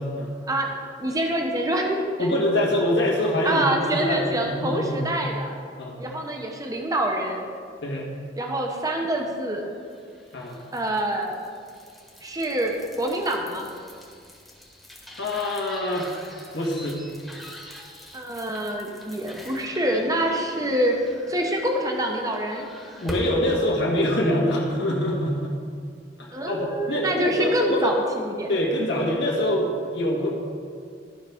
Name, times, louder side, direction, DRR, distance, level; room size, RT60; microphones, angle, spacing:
voice 1, 0.5-2.3 3.4-5.5 6.0-7.5 8.4-9.7 10.7-11.4 12.2-13.7 18.1-21.0 21.3-22.7 26.3-28.5, right 1 dB, 20° right, 2 dB, 0.8 m, -26 dB
voice 2, 2.2-5.0 5.8-6.0 7.8-8.1 10.3-10.6 15.2-16.1 16.5-17.0 23.0-25.6 26.2-27.9 28.5-30.3, left 1 dB, 70° left, -2 dB, 1.7 m, -25 dB
sound 1, 9.8-23.5, equal, ahead, 1.3 m, -43 dB
14.0 x 5.6 x 3.6 m, 2.2 s
head